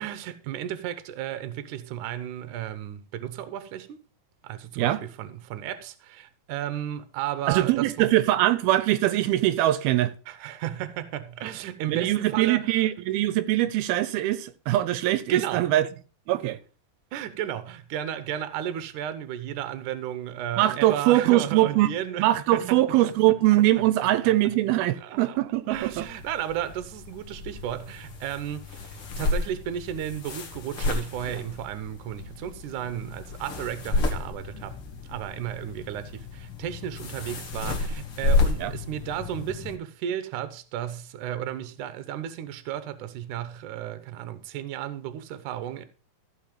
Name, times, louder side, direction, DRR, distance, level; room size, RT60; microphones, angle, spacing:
voice 1, 0.0-4.0 4.4-8.1 10.3-12.7 15.3-15.7 17.1-22.8 25.0-25.4 25.7-34.8 35.0-45.9, right 11 dB, 70° right, 2.2 m, -34 dB
voice 2, 7.5-10.1 11.9-15.9 16.3-16.6 20.6-21.9 22.2-26.1 38.6-38.7, right 15 dB, 85° right, 2.6 m, -22 dB
sound 1, 25.7-39.8, left 3 dB, 45° left, 2.1 m, -31 dB
14.5 x 5.8 x 5.0 m
omnidirectional pair, 4.3 m